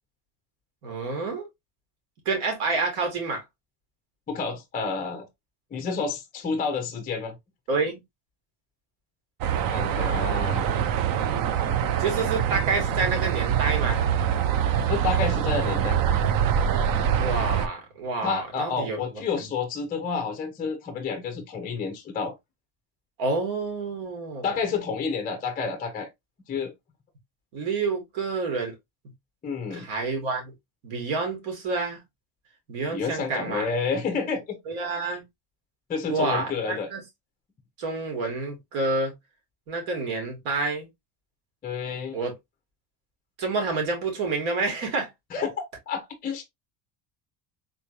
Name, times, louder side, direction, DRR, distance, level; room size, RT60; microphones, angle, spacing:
voice 1, 0.8-1.5 2.3-3.4 7.7-8.0 12.0-14.0 17.2-19.2 23.2-24.5 27.5-28.7 29.7-30.5 30.8-32.0 32.7-33.7 34.7-35.2 36.1-37.0 37.8-39.1 39.7-40.9 42.1-42.3 43.4-45.1, right 3 dB, 85° right, 1.9 m, -28 dB
voice 2, 4.3-5.3 5.7-7.4 9.7-10.7 14.9-16.0 18.2-22.3 24.4-26.1 26.5-26.7 29.4-29.9 32.9-34.6 35.9-36.9 41.6-42.2 45.3-46.4, left 5 dB, 20° left, 0.5 m, -29 dB
sound 1, 9.4-17.7, right 9 dB, 50° right, 0.5 m, -24 dB
3.8 x 2.9 x 2.4 m
cardioid pair, 150°, 45 cm